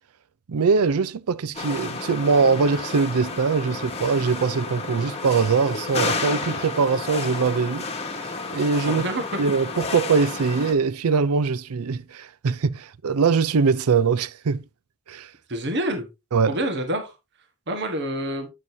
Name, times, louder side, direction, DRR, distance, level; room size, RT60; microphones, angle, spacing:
voice 1, 0.5-7.9 8.5-9.1 9.4-14.6 15.1-15.3 16.3-16.6, right 5 dB, 85° right, 0.5 m, -22 dB
sound 1, 1.5-10.7, left 3 dB, 30° left, 1.3 m, -31 dB
voice 2, 8.9-9.3 15.5-16.1 16.5-17.1 17.7-18.5, right 1 dB, 55° right, 1.3 m, -27 dB
8.7 x 6.4 x 2.7 m
head